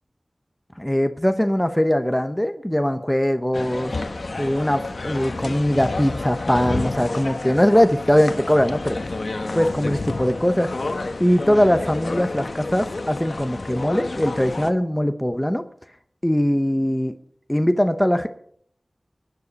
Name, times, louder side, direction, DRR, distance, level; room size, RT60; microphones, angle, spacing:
voice 1, 0.8-3.9 4.4-9.0 9.5-10.7 11.2-15.6 16.2-17.1 17.5-18.3, equal, 10° left, 8 dB, 1.0 m, -21 dB
sound 1, 3.5-14.7, left 2 dB, 75° left, 1.2 m, -30 dB
22.5 x 10.0 x 5.3 m, 0.64 s
wide cardioid pair, 65°, 0 cm